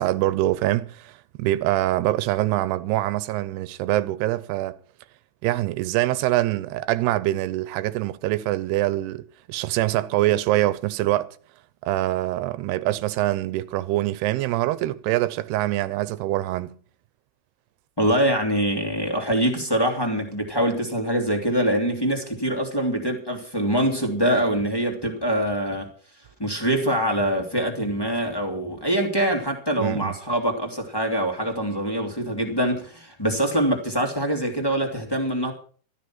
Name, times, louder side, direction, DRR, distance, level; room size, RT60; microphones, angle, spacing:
voice 1, 0.0-4.8 5.4-11.3 11.8-16.7 29.8-30.1, right 16 dB, 90° right, 2.8 m, -24 dB
voice 2, 18.0-25.9 26.4-35.5, right 1 dB, 10° left, 1.6 m, -24 dB
13.0 x 12.5 x 5.9 m
omnidirectional pair, 4.6 m